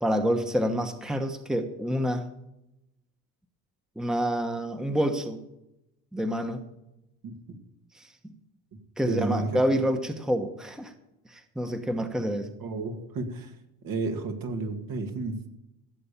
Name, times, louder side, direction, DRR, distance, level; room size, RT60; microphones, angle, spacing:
voice 1, 0.0-2.2 4.0-5.4 6.1-6.6 7.9-8.3 9.0-10.9 11.3-12.5, equal, ahead, 7 dB, 1.1 m, -28 dB
voice 2, 9.1-9.8 12.2-12.3 12.6-13.5 13.8-15.5, right 3 dB, 65° right, 4 dB, 2.3 m, -32 dB
15.5 x 6.8 x 7.1 m, 0.89 s
supercardioid pair, 95°, 37 cm